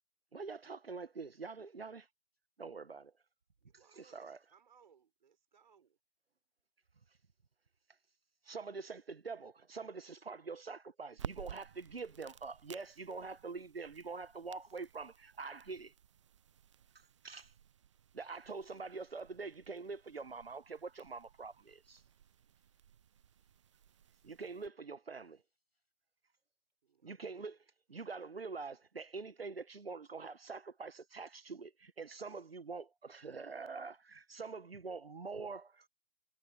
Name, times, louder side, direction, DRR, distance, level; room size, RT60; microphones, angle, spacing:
voice 1, 0.3-2.1 2.6-3.1 4.0-4.4 8.5-15.9 17.2-17.5 18.1-22.0 24.2-25.4 27.0-27.6 27.9-35.9, right 4 dB, 75° right, 1.3 m, -45 dB
voice 2, 3.6-6.0 26.8-27.6, right 7 dB, 50° right, 6.4 m, -67 dB
sound 1, 11.1-24.7, right 9 dB, 30° right, 0.7 m, -54 dB
voice 3, 22.0-24.3 25.7-25.9, left 1 dB, 85° left, 7.9 m, -90 dB
figure-of-eight pair, 135°, 30 cm